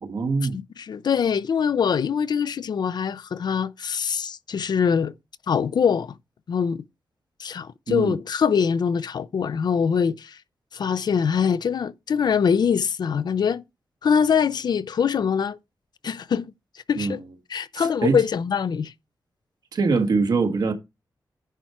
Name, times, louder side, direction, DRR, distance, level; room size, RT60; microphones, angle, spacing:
voice 1, 0.0-0.6 7.9-8.2 17.0-17.2 17.8-18.2 19.7-20.7, right 4 dB, 65° right, 1.6 m, -23 dB
voice 2, 0.5-5.1 5.5-6.2 6.5-6.8 7.4-10.4 10.7-13.6 14.0-15.6 16.0-16.5 16.9-17.2 17.5-18.9, left 7 dB, 70° left, 0.6 m, -23 dB
10.0 x 4.5 x 4.7 m
wide cardioid pair, 115°, 7 cm